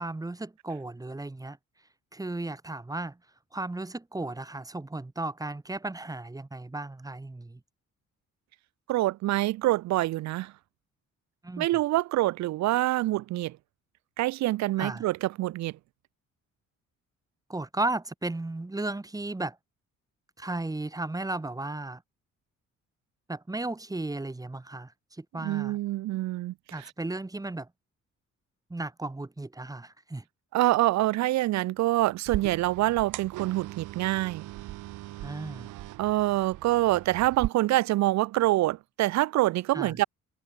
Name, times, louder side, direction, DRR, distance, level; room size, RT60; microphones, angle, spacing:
voice 1, 0.0-1.6 2.1-3.2 3.5-7.6 11.4-11.7 14.8-15.1 17.5-19.6 20.4-22.0 23.3-24.9 25.2-25.8 26.7-27.7 28.7-30.2 35.2-35.7 39.7-40.0, right 2 dB, 10° right, 1.2 m, -35 dB
voice 2, 8.9-10.5 11.6-13.6 14.2-15.7 25.4-26.5 30.5-34.5 36.0-40.0, right 16 dB, 65° right, 0.4 m, -26 dB
sound 1, 32.2-37.5, right 17 dB, 85° right, 1.2 m, -39 dB
cardioid pair, 90°, 30 cm